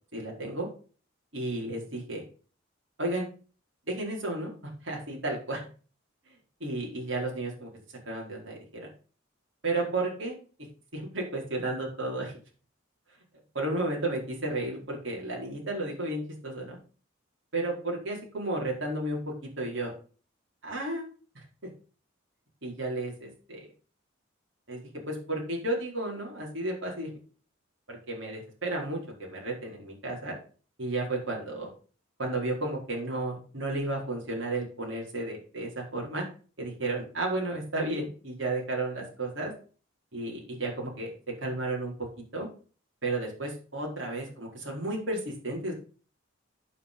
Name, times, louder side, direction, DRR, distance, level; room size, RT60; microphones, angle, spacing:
voice 1, 0.1-0.7 1.3-2.2 3.0-3.3 3.9-4.5 4.8-5.6 6.6-7.7 8.1-8.9 9.6-10.3 10.9-12.3 13.5-16.8 17.5-19.2 19.6-19.9 20.6-21.0 21.3-21.4 22.6-23.7 24.7-24.8 25.1-27.1 27.9-30.3 30.8-31.7 32.2-36.2 36.6-39.5 40.1-41.1 41.4-41.9 42.3-42.5 43.0-45.7, right 2 dB, 65° right, -1 dB, 4.5 m, -33 dB
9.1 x 6.7 x 5.4 m, 0.38 s
head